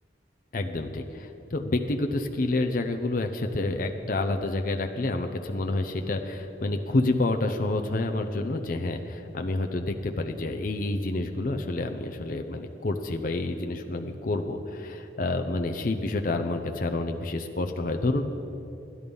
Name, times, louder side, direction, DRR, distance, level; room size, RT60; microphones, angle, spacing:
voice 1, 0.5-18.2, left 2 dB, 50° left, 5 dB, 0.6 m, -28 dB
11.0 x 11.0 x 5.3 m, 2.8 s
head